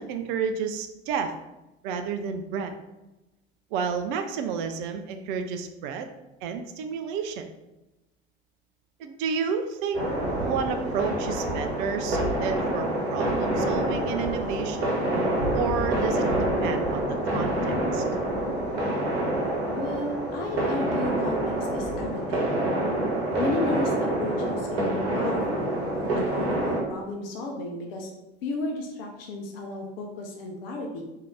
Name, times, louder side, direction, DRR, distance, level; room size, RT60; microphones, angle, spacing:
voice 1, 0.0-1.3 1.8-2.8 3.7-6.1 6.4-7.5 9.0-10.1 10.4-15.0 15.5-16.3 16.6-18.0, right 6 dB, 50° right, 7 dB, 0.4 m, -31 dB
sound 1, 9.9-26.8, right 1 dB, 65° right, 1.0 m, -27 dB
voice 2, 19.8-22.5 23.4-28.1 28.4-31.0, left 2 dB, 60° left, 1 dB, 0.7 m, -33 dB
3.7 x 2.7 x 3.4 m, 1.0 s
figure-of-eight pair, 65°, 33 cm